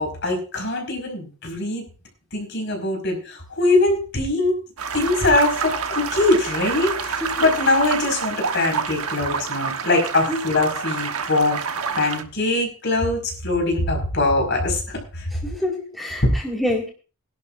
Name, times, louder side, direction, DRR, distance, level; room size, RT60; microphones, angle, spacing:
voice 1, 0.0-1.8 2.3-4.6 4.9-11.6 12.0-15.3 16.2-16.3, left 2 dB, 50° left, 3 dB, 5.2 m, -22 dB
sound 1, 4.8-12.2, right 6 dB, 75° right, 1.2 m, -28 dB
voice 2, 15.4-16.9, left 1 dB, ahead, -2 dB, 2.1 m, -26 dB
21.0 x 11.5 x 2.6 m, 0.36 s
head